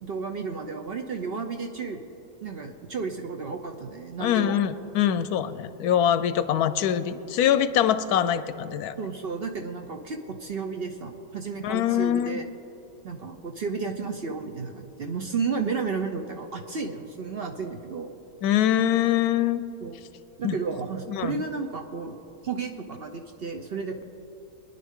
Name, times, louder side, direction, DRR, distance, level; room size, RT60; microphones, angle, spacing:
voice 1, 0.0-2.0 2.4-4.6 9.0-12.5 13.0-18.1 19.8-20.0 20.4-22.2 22.4-24.0, right 5 dB, 50° right, 4 dB, 0.8 m, -32 dB
voice 2, 4.2-9.0 11.6-12.4 18.4-19.6 20.4-20.5 21.1-21.5, left 10 dB, 85° left, 13 dB, 1.1 m, -24 dB
23.0 x 10.0 x 3.7 m, 2.9 s
omnidirectional pair, 1.6 m